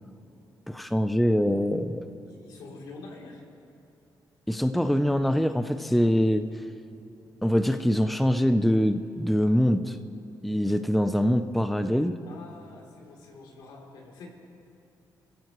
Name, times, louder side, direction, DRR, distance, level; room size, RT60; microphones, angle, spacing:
voice 1, 0.7-2.1 4.5-6.5 7.4-10.0 10.4-12.2, equal, ahead, 9 dB, 0.5 m, -24 dB
voice 2, 2.2-3.4 12.3-14.3, left 3 dB, 85° left, -1 dB, 3.2 m, -46 dB
27.0 x 15.5 x 3.1 m, 3.0 s
cardioid pair, 150°, 7 cm